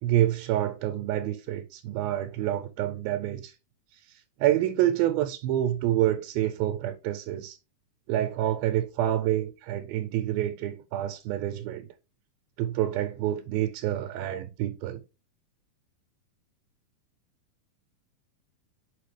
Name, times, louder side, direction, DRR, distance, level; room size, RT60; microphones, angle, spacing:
voice 1, 0.0-3.6 3.9-7.6 8.1-11.9 12.6-15.0, right 12 dB, 85° right, 2.4 m, -28 dB
6.3 x 5.0 x 3.2 m
omnidirectional pair, 4.3 m